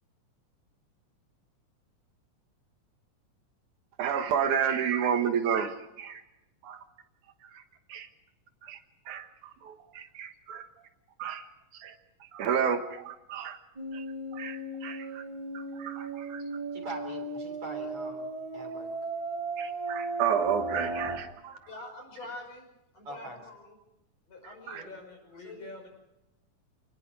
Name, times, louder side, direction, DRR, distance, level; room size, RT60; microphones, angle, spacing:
voice 1, 4.0-6.2 6.6-6.8 7.5-7.6 7.9-8.1 8.6-8.8 9.1-10.7 11.2-11.5 11.8-12.0 12.3-13.6 13.9-14.0 14.3-15.2 15.5-16.4 19.6-21.6 24.7-24.8, right 8 dB, 80° right, 7 dB, 2.8 m, -31 dB
sound 1, 13.8-21.2, right 2 dB, 10° right, 3.3 m, -36 dB
voice 2, 16.7-18.3 18.5-18.9 23.0-23.4, right 2 dB, 50° right, 5 dB, 4.3 m, -42 dB
voice 3, 21.7-22.7 22.9-23.8 24.3-24.9 25.4-25.7, left 2 dB, 55° left, 2 dB, 7.0 m, -45 dB
voice 4, 24.7-25.9, left 2 dB, 35° left, 2 dB, 6.2 m, -46 dB
28.5 x 19.5 x 4.8 m, 0.90 s
omnidirectional pair, 3.4 m